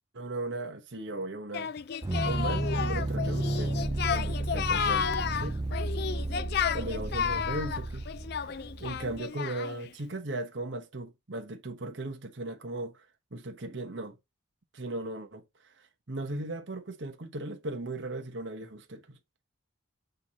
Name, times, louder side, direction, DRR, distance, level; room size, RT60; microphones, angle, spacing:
voice 1, 0.1-1.7 2.2-3.7 4.1-5.1 5.4-5.6 6.7-8.1 8.4-13.0 13.3-14.2 14.7-19.2, right 2 dB, 65° right, 1.1 m, -37 dB
Singing, 1.5-9.9, left 7 dB, 50° left, 0.3 m, -32 dB
sound 1, 2.0-9.2, right 2 dB, 20° right, 0.4 m, -32 dB
7.9 x 2.9 x 5.2 m
head